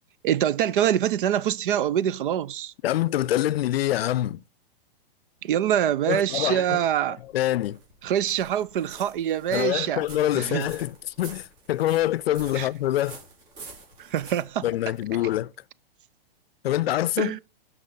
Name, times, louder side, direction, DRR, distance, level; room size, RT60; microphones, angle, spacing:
voice 1, 0.2-2.7 5.4-7.2 8.0-10.0 10.3-10.7 12.5-12.7 14.0-14.7 17.2-17.4, right 10 dB, 60° right, 0.6 m, -25 dB
voice 2, 2.8-4.4 6.1-6.8 7.3-7.8 9.5-13.2 14.6-15.5 16.6-17.4, left 13 dB, 80° left, 0.5 m, -25 dB
sound 1, 7.2-15.4, right 3 dB, 40° right, 5.1 m, -47 dB
17.0 x 6.1 x 3.9 m
hypercardioid pair, 140°, 30 cm